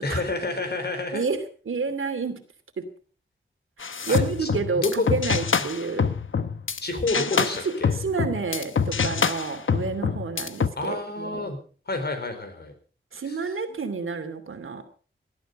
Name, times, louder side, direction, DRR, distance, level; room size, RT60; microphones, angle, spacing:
voice 1, 0.0-1.3 4.1-5.1 5.6-5.7 6.8-7.9 10.8-11.6 11.9-12.7 13.2-13.4, left 2 dB, 55° left, 6 dB, 4.4 m, -29 dB
voice 2, 1.7-2.4 2.8-2.9 3.8-6.1 7.1-11.5 13.1-14.8, right 4 dB, 90° right, 8 dB, 2.6 m, -29 dB
sound 1, 3.8-6.8 7.1-10.7, left 6 dB, 80° left, 1.1 m, -25 dB
18.5 x 12.5 x 5.3 m, 0.41 s
wide cardioid pair, 110°, 20 cm